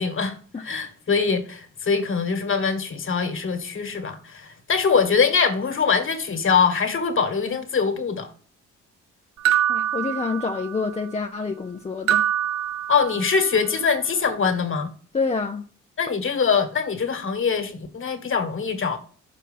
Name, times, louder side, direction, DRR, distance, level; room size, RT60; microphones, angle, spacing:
voice 1, 0.0-8.3 12.9-14.9 16.0-19.0, left 5 dB, 40° left, 1.6 m, -23 dB
sound 1, 9.4-10.9 12.1-13.5, right 10 dB, 60° right, 0.6 m, -24 dB
voice 2, 9.7-12.3 15.1-15.7, left 4 dB, 20° left, 0.6 m, -27 dB
6.2 x 4.4 x 5.5 m
cardioid pair, 90°, 30 cm